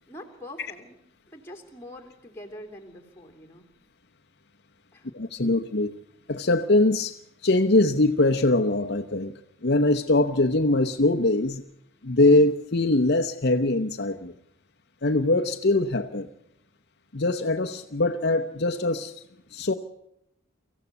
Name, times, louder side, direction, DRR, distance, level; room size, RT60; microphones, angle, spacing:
voice 1, 0.1-1.0 1.3-3.7 4.9-5.1, left 1 dB, 10° left, 2 dB, 3.2 m, -44 dB
voice 2, 5.1-5.9 6.3-7.2 7.4-9.3 9.6-11.6 12.0-14.3 15.0-16.3 17.1-19.1 19.5-19.7, left 2 dB, 50° left, 6 dB, 0.9 m, -22 dB
24.5 x 15.5 x 8.1 m, 0.81 s
head